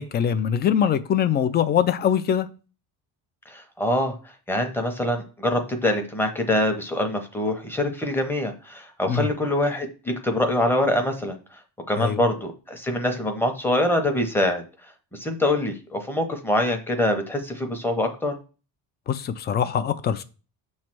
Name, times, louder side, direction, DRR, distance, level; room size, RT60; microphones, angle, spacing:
voice 1, 0.0-2.5 9.1-9.3 12.0-12.2 19.1-20.2, left 8 dB, 30° left, 0.3 m, -23 dB
voice 2, 3.5-4.1 4.5-11.4 11.9-14.6 15.1-18.4, left 1 dB, 5° left, 0.7 m, -24 dB
6.8 x 3.2 x 5.9 m
cardioid pair, 175°, 39 cm